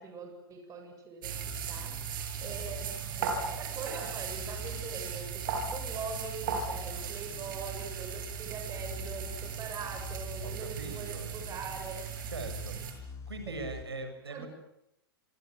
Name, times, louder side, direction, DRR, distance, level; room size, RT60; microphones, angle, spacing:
voice 1, 0.0-12.0 14.3-14.5, right 4 dB, 25° right, 4 dB, 7.8 m, -43 dB
sound 1, 1.2-12.9, right 7 dB, 55° right, 7.4 m, -37 dB
sound 2, 1.3-13.8, left 5 dB, 25° left, 6.8 m, -46 dB
voice 2, 2.4-2.7 10.4-11.3 12.3-12.8 13.3-14.5, right 3 dB, 80° right, 7 dB, 7.2 m, -41 dB
28.0 x 26.5 x 8.0 m, 0.83 s
figure-of-eight pair, 105°, 13 cm